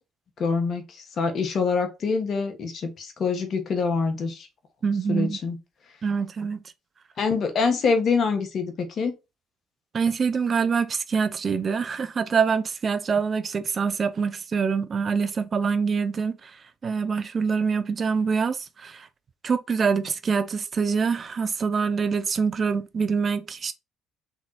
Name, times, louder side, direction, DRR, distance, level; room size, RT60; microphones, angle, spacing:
voice 1, 0.4-4.5 5.1-5.6 7.2-9.1, left 4 dB, 50° left, 1.4 m, -25 dB
voice 2, 4.8-5.4 6.0-6.6 9.9-16.5 16.8-19.1 19.4-23.7, right 5 dB, 40° right, 0.6 m, -25 dB
3.7 x 3.5 x 4.1 m
supercardioid pair, 70°, 0 cm